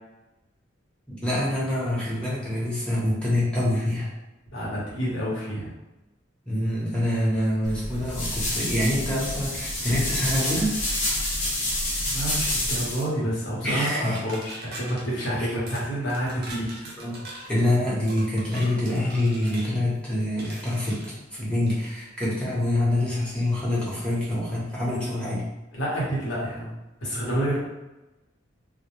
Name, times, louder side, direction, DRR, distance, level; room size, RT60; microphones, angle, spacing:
voice 1, 1.1-4.1 6.5-10.8 13.6-14.2 15.4-15.5 17.0-17.2 17.5-25.4, left 1 dB, 5° left, -7 dB, 0.8 m, -26 dB
voice 2, 4.5-5.7 12.1-16.9 25.7-26.7 27.0-27.6, right 1 dB, 70° left, -6 dB, 1.0 m, -28 dB
sound 1, 7.6-13.0, left 1 dB, 40° left, 0.6 m, -28 dB
sound 2, 13.9-15.0 15.7-15.8 16.1-17.5 18.1-19.7 20.4-21.1 21.7-21.9, right 2 dB, 55° right, 0.6 m, -41 dB
2.1 x 2.1 x 3.0 m, 1.0 s
head